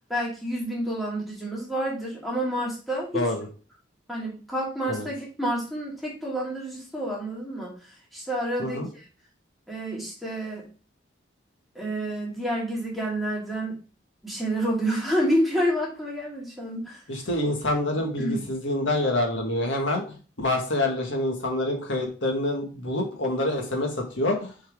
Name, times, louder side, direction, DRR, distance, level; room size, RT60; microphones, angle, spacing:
voice 1, 0.1-3.2 4.1-9.0 9.7-10.6 11.7-13.8 14.2-17.0 18.2-18.4, equal, ahead, -5 dB, 2.1 m, -29 dB
voice 2, 3.1-3.5 4.9-5.1 8.6-8.9 17.1-20.0 20.4-24.5, left 1 dB, 90° left, 2 dB, 1.8 m, -26 dB
6.5 x 4.7 x 3.6 m, 0.37 s
head